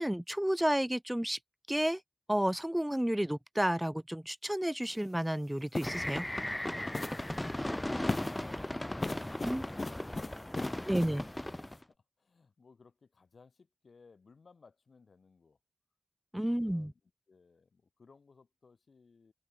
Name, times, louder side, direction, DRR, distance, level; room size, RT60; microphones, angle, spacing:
voice 1, 0.0-1.4 1.7-2.0 2.3-6.3 9.4-9.6 10.9-11.2 16.3-16.9, equal, 10° right, 0.4 m, -31 dB
sound 1, 4.8-5.0 5.7-6.1 6.9-7.3 8.1-8.5 9.0-11.2, left 2 dB, 45° left, 0.7 m, -38 dB
sound 2, 5.8-11.8, left 1 dB, 15° left, 0.9 m, -37 dB
voice 2, 11.9-15.6 16.4-17.0 17.3-19.3, left 4 dB, 70° left, 5.8 m, -61 dB
cardioid pair, 45°, 0 cm